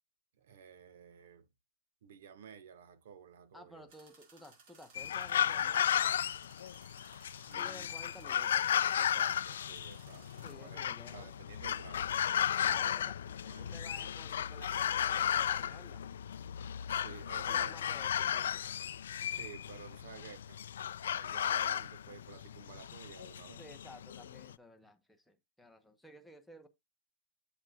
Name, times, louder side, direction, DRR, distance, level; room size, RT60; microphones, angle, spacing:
voice 1, 0.4-1.5 2.0-3.9 7.4-8.1 9.0-12.3 12.7-13.0 13.3-13.8 16.8-18.0 19.3-20.6 21.1-23.6, right 7 dB, 65° right, 1.6 m, -53 dB
voice 2, 3.5-6.0 7.5-8.7 10.4-11.3 12.6-13.2 13.6-16.0 17.5-18.6 23.6-26.7, left 1 dB, ahead, 0.9 m, -54 dB
sound 1, 3.9-10.5, right 4 dB, 45° right, 4.8 m, -62 dB
sound 2, 4.9-24.5, left 9 dB, 85° left, 0.3 m, -34 dB
7.8 x 7.4 x 2.3 m
supercardioid pair, 165°, 0 cm